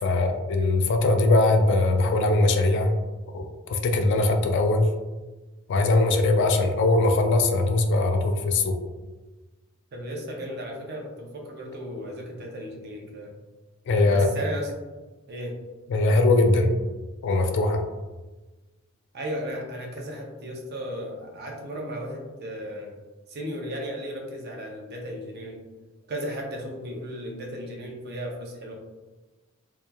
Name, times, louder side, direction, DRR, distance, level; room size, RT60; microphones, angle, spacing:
voice 1, 0.0-2.9 3.3-4.8 5.7-8.8 13.9-14.3 15.9-16.7 17.2-17.8, left 2 dB, 60° left, 5 dB, 0.3 m, -21 dB
voice 2, 9.9-13.3 14.0-14.7 15.3-15.5 19.1-22.9 23.3-25.6 26.1-28.7, equal, 50° right, 0 dB, 0.5 m, -35 dB
2.9 x 2.3 x 2.2 m, 1.2 s
head